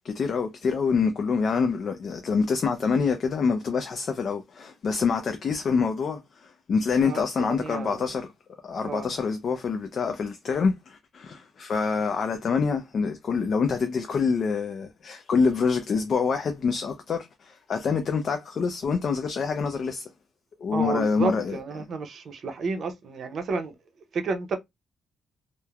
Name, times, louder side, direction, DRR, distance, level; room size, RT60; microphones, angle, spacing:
voice 1, 0.0-8.3 8.6-20.1 20.6-21.6, left 5 dB, 45° left, 0.4 m, -26 dB
voice 2, 7.0-8.1 8.8-9.1 20.7-23.7 24.1-24.6, right 4 dB, 50° right, 0.6 m, -31 dB
3.0 x 2.1 x 2.3 m
cardioid pair, 140°, 0 cm